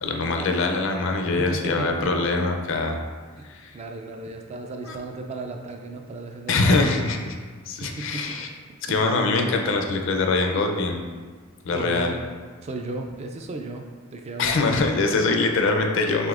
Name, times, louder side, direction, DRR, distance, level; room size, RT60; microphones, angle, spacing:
voice 1, 0.0-3.0 3.4-3.7 4.9-5.0 6.5-7.4 7.7-8.5 8.8-11.1 11.6-12.2 14.4-16.3, left 3 dB, 65° left, 3 dB, 0.5 m, -23 dB
voice 2, 1.4-2.3 3.4-3.5 3.7-7.0 7.8-8.4 8.9-9.1 11.7-12.2 12.6-13.9 14.1-14.7, right 2 dB, 30° right, 3 dB, 0.3 m, -35 dB
5.0 x 3.2 x 2.4 m, 1.5 s
head